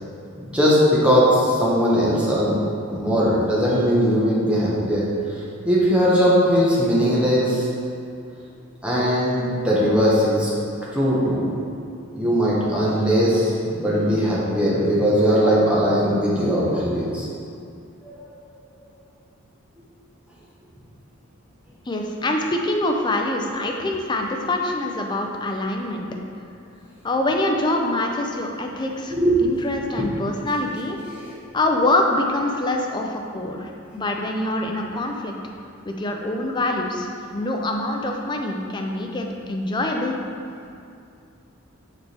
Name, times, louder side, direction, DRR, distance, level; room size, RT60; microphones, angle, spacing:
voice 1, 0.5-2.6 2.9-5.1 5.6-7.7 8.8-10.5 10.9-11.5 12.1-17.2 18.0-18.2 29.1-29.4 29.7-30.1 31.1-31.2, equal, 5° right, -7 dB, 1.1 m, -19 dB
voice 2, 21.9-26.1 27.0-29.2 29.4-31.0 31.5-35.3 35.8-40.2, left 2 dB, 20° left, 1 dB, 0.5 m, -25 dB
6.6 x 4.7 x 3.4 m, 2.5 s
head